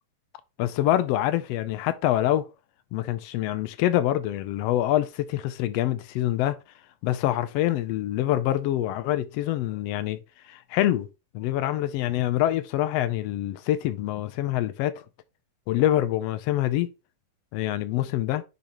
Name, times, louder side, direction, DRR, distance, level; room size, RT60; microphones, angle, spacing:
voice 1, 0.6-2.5 2.9-6.6 7.0-10.2 10.5-11.1 11.3-15.0 15.7-16.9 17.5-18.4, left 13 dB, 85° left, 1.4 m, -25 dB
10.5 x 4.0 x 2.9 m
omnidirectional pair, 3.5 m